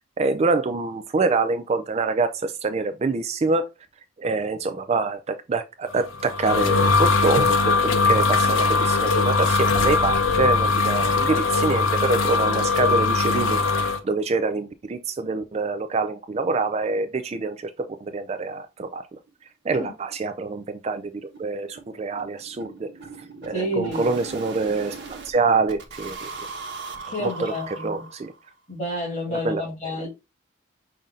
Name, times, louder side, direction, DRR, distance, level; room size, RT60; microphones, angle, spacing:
voice 1, 0.2-3.7 4.2-19.0 19.7-21.0 21.4-22.9 23.4-26.3 27.2-27.5 27.8-28.3 29.3-29.9, right 3 dB, 30° right, 0.3 m, -26 dB
sound 1, 6.0-14.0, left 4 dB, 70° left, 0.8 m, -21 dB
sound 2, 18.4-18.5 18.9-19.0 19.3-19.4 19.7-19.8 20.1-25.3 25.7-28.5, right 4 dB, 55° right, 1.0 m, -39 dB
voice 2, 23.5-24.2 27.0-28.1 28.7-30.1, equal, 35° left, 2.5 m, -30 dB
5.6 x 2.6 x 3.6 m
head